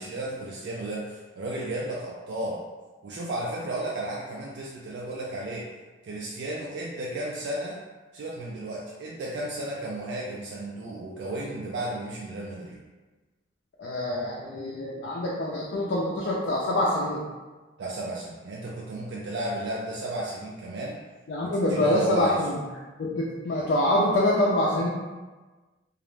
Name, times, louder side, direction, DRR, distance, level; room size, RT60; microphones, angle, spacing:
voice 1, 0.0-2.6 3.0-5.7 6.0-7.8 8.1-12.8 17.8-21.0 21.4-22.4, right 1 dB, 70° right, -3 dB, 0.3 m, -34 dB
voice 2, 13.8-17.2 21.3-22.6 23.0-24.9, left 1 dB, 65° left, -5 dB, 0.4 m, -25 dB
2.4 x 2.0 x 3.1 m, 1.3 s
head